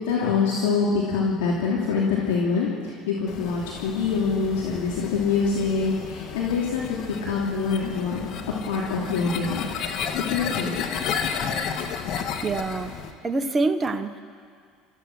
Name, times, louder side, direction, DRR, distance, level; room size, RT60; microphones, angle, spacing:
voice 1, 0.0-8.2 8.7-9.8 10.2-10.8, left 5 dB, 85° left, -4 dB, 2.8 m, -25 dB
sound 1, 3.3-13.1, left 7 dB, 60° left, 1.8 m, -32 dB
voice 2, 12.4-13.0 13.2-14.2, right 3 dB, 25° right, 7 dB, 1.2 m, -25 dB
29.5 x 14.5 x 6.2 m, 2.2 s
hypercardioid pair, 80°, 0 cm